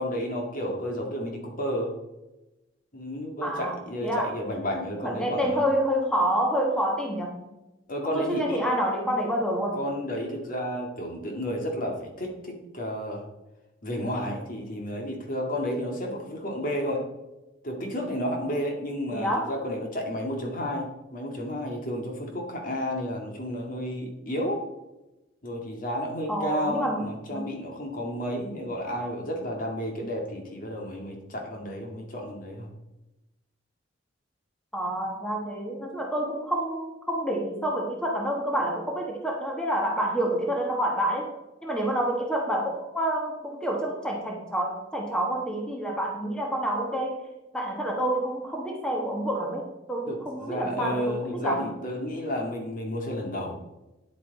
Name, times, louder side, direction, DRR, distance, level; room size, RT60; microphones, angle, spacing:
voice 1, 0.0-1.9 2.9-5.6 7.9-8.6 9.7-13.2 13.8-17.0 17.6-24.6 25.4-32.7 50.1-53.6, equal, 50° left, 1 dB, 2.1 m, -31 dB
voice 2, 3.4-4.3 5.0-7.4 8.1-9.9 19.1-19.6 26.3-27.5 34.7-41.3 41.6-51.7, right 1 dB, 5° left, 0 dB, 1.3 m, -28 dB
9.7 x 8.6 x 4.1 m, 0.99 s
head